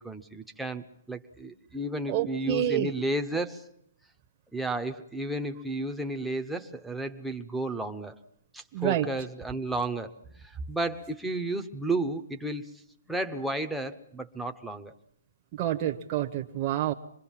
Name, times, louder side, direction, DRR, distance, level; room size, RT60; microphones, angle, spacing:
voice 1, 0.0-3.7 4.5-8.1 8.5-10.1 10.4-12.8 13.1-14.9, right 2 dB, ahead, 4 dB, 0.9 m, -33 dB
voice 2, 2.1-2.9 8.7-9.1 15.5-16.9, right 12 dB, 30° right, 3 dB, 1.0 m, -28 dB
25.5 x 21.5 x 7.4 m, 0.71 s
hypercardioid pair, 160°, 0 cm